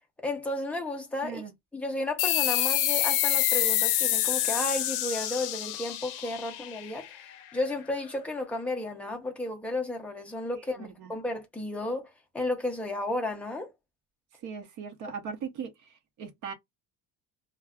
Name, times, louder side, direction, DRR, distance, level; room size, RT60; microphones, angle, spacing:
voice 1, 0.2-1.4 1.7-7.2 7.5-12.1 12.3-13.7, left 2 dB, 5° left, 0.3 m, -33 dB
voice 2, 1.2-1.5 10.7-11.1 14.4-15.7 16.2-16.5, right 6 dB, 45° right, 0.7 m, -38 dB
sound 1, 2.2-7.3, left 13 dB, 60° left, 0.6 m, -27 dB
2.3 x 2.1 x 3.4 m
cardioid pair, 175°, 40 cm